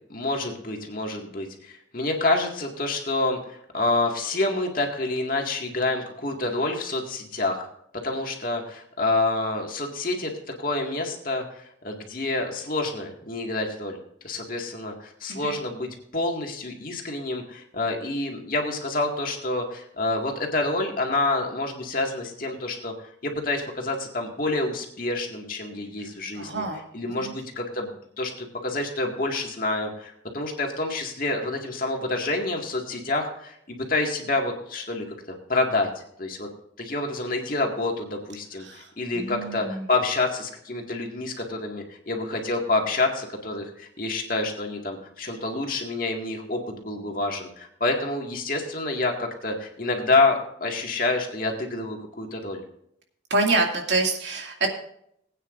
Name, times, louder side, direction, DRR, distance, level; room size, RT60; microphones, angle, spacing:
voice 1, 0.1-7.7 7.9-10.3 10.6-14.0 14.2-22.9 23.2-26.6 26.9-35.2 35.5-36.5 36.8-52.6, left 2 dB, 50° left, 1 dB, 2.0 m, -28 dB
voice 2, 26.3-26.8 27.2-27.3 38.6-38.9 39.1-39.9 53.3-54.7, right 3 dB, 75° right, 1 dB, 2.3 m, -26 dB
20.0 x 9.1 x 2.6 m, 0.70 s
head